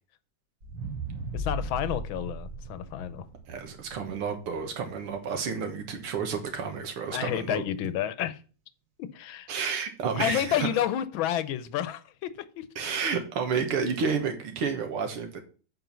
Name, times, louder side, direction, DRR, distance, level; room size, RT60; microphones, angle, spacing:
sound 1, 0.6-4.9 5.4-5.5, right 1 dB, 55° right, 2.4 m, -37 dB
voice 1, 1.3-3.3 7.1-8.4 9.0-9.5 10.2-12.7, left 11 dB, 70° left, 1.4 m, -30 dB
voice 2, 3.5-7.6 9.5-10.7 12.8-15.4, right 5 dB, 85° right, 2.3 m, -30 dB
7.9 x 4.5 x 6.8 m
omnidirectional pair, 2.4 m